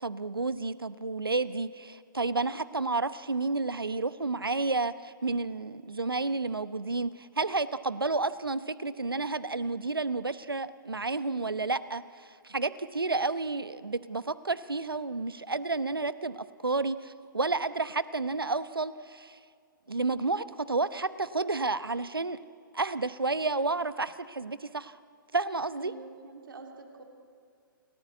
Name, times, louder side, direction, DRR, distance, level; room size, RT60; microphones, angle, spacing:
voice 1, 0.0-19.4 19.9-22.4 22.7-24.9 25.3-25.9, right 3 dB, 90° right, 15 dB, 0.9 m, -31 dB
voice 2, 25.8-27.0, right 3 dB, 70° right, 3 dB, 3.6 m, -46 dB
29.5 x 17.0 x 8.2 m, 2.2 s
figure-of-eight pair, 120°, 12 cm